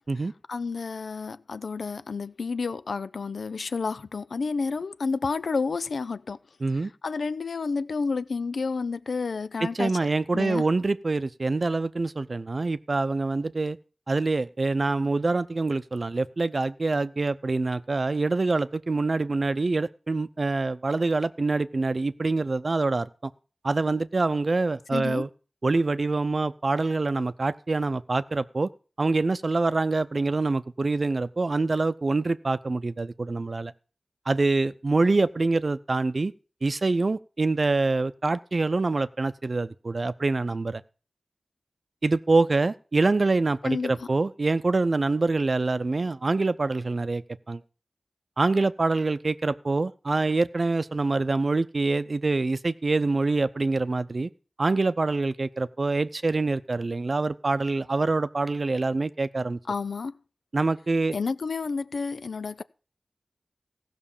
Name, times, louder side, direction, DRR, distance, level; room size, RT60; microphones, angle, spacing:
voice 1, 0.5-6.4 7.0-9.9 10.3-10.6 24.9-25.3 43.6-44.1 59.7-60.1 61.1-62.6, left 4 dB, 90° left, 0.5 m, -30 dB
voice 2, 9.6-13.8 14.1-23.3 23.6-25.3 25.6-28.7 29.0-33.7 34.3-36.3 36.6-40.8 42.0-47.6 48.4-54.3 54.6-59.6 60.5-61.2, right 3 dB, 60° right, 0.6 m, -25 dB
15.5 x 6.0 x 7.1 m
cardioid pair, 45°, 0 cm